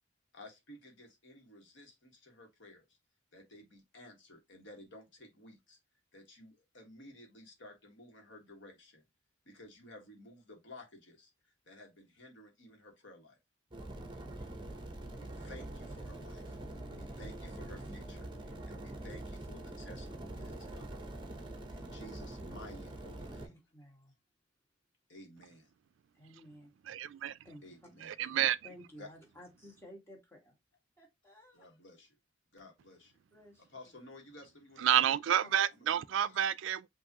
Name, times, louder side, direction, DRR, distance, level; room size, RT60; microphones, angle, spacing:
voice 1, 0.3-3.0 3.3-5.8 6.1-9.0 9.4-13.4 15.1-21.0 21.7-23.6 25.1-25.7 27.6-28.1 29.0-29.1 31.5-32.2 32.5-33.1 33.6-35.0 35.7-36.4, left 1 dB, 70° left, 1.5 m, -54 dB
sound 1, 13.7-23.5, right 1 dB, 25° right, 0.8 m, -44 dB
voice 2, 13.9-14.5 16.9-17.3 23.4-24.1 26.1-26.7 27.4-27.7 28.2-28.4 28.6-30.6 31.0-31.6 33.3-33.7 35.4-35.6, equal, 15° left, 1.4 m, -55 dB
voice 3, 26.9-27.4 28.0-28.6 34.8-36.9, right 10 dB, 70° right, 0.3 m, -29 dB
5.9 x 2.7 x 2.8 m
head